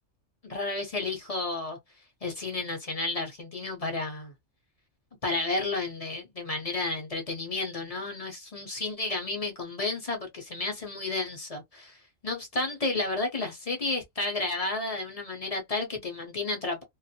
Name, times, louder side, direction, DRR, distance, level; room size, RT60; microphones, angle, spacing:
voice 1, 0.4-1.8 2.2-4.3 5.2-12.0 12.2-16.8, left 3 dB, 40° left, 0.6 m, -32 dB
2.5 x 2.3 x 2.7 m
omnidirectional pair, 1.3 m